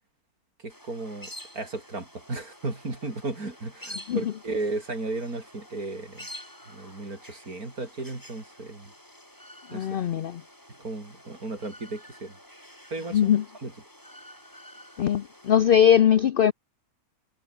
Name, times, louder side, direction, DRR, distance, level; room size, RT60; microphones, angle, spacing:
voice 1, 0.6-6.3 6.7-8.9 9.7-10.0 10.8-12.4 12.9-13.7, right 2 dB, 70° right, 5.3 m, -35 dB
sound 1, 0.7-15.5, equal, 10° left, 6.7 m, -48 dB
voice 2, 9.7-10.4 13.1-13.4 15.0-16.5, left 9 dB, 80° left, 0.5 m, -20 dB
omnidirectional pair, 1.6 m